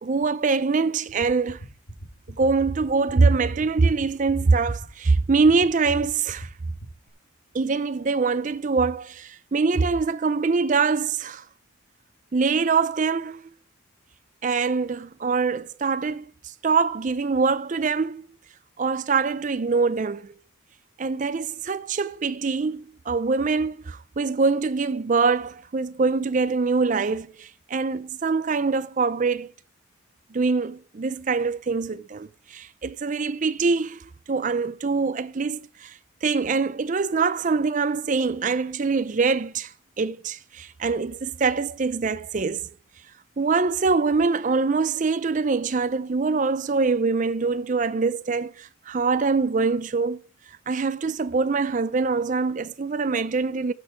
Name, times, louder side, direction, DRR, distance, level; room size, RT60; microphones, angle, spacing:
voice 1, 0.0-1.6 2.4-6.5 7.5-11.4 12.3-13.5 14.4-16.2 16.6-18.3 18.8-20.3 21.0-29.5 30.3-39.7 40.0-42.7 43.4-50.2 50.7-53.7, right 4 dB, 35° right, 0.4 m, -24 dB
sound 1, 1.1-7.1, right 1 dB, 80° left, 2.8 m, -39 dB
13.0 x 6.4 x 4.9 m
head